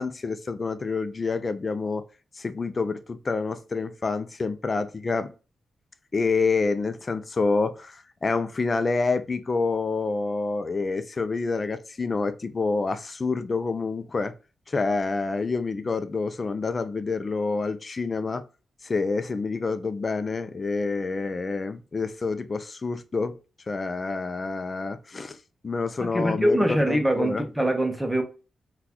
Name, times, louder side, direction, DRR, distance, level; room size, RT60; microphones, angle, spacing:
voice 1, 0.0-2.0 2.4-5.3 6.1-14.3 14.7-18.4 18.8-23.4 23.7-25.4 25.6-27.4, left 4 dB, 40° left, 0.4 m, -27 dB
voice 2, 26.0-28.2, right 1 dB, 10° right, 0.7 m, -23 dB
3.8 x 2.3 x 2.9 m
cardioid pair, 80°, 0 cm